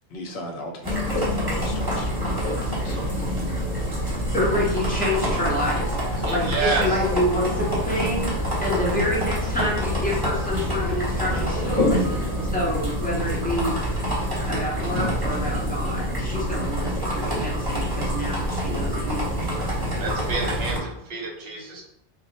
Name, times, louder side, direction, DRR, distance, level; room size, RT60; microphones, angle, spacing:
voice 1, 0.1-1.1 1.4-3.0, equal, 80° left, 2 dB, 0.9 m, -37 dB
sound 1, 0.8-20.8, equal, 25° right, 0.9 m, -26 dB
sound 2, 0.9-4.2 4.4-4.5, left 9 dB, 55° left, 0.4 m, -37 dB
voice 2, 4.3-6.0 6.3-8.3 8.6-13.8 14.5-20.1, left 1 dB, 10° left, -5 dB, 0.7 m, -28 dB
sound 3, 4.8-12.7, right 3 dB, 60° right, 0.9 m, -39 dB
voice 3, 6.1-7.0 19.9-21.8, right 4 dB, 85° right, 0 dB, 1.0 m, -29 dB
2.5 x 2.1 x 4.0 m, 0.75 s
omnidirectional pair, 1.0 m